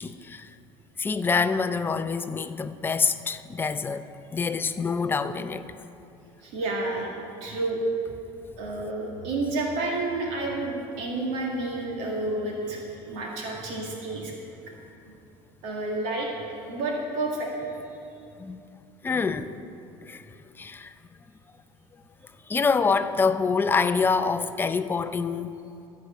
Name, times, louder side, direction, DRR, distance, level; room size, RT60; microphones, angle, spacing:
voice 1, 0.0-0.5 1.0-4.1 4.3-5.7 18.4-18.6 19.0-19.5 20.0-20.2 20.6-20.9 22.5-25.5, left 5 dB, 20° left, 0.5 m, -26 dB
voice 2, 6.4-7.1 7.4-7.8 8.6-14.3 15.6-16.3 16.6-17.5, right 2 dB, 70° right, 1.9 m, -30 dB
13.0 x 4.7 x 8.4 m
supercardioid pair, 115°, 12 cm